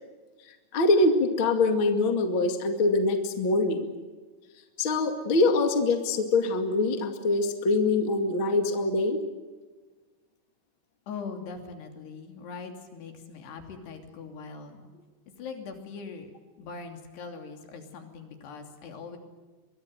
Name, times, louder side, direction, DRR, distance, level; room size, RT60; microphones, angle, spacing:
voice 1, 0.7-3.9 4.8-9.2, left 2 dB, 35° left, 6 dB, 2.4 m, -24 dB
voice 2, 11.1-14.9 15.4-16.3 16.6-19.2, left 5 dB, 70° left, 5 dB, 5.0 m, -41 dB
24.5 x 22.5 x 7.9 m, 1.3 s
omnidirectional pair, 5.0 m